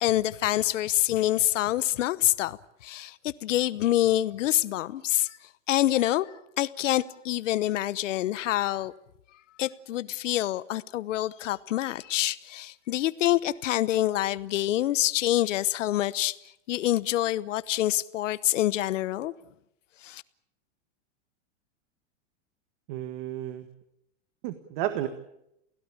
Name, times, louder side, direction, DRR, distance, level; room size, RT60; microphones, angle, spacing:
voice 1, 0.0-2.6 2.8-5.4 5.7-6.3 6.6-8.9 9.6-16.4 16.7-19.3 20.0-20.2, left 14 dB, 85° left, 1.0 m, -26 dB
voice 2, 22.9-23.7 24.4-25.1, right 13 dB, 45° right, 1.7 m, -32 dB
28.5 x 17.0 x 8.8 m
supercardioid pair, 165°, 36 cm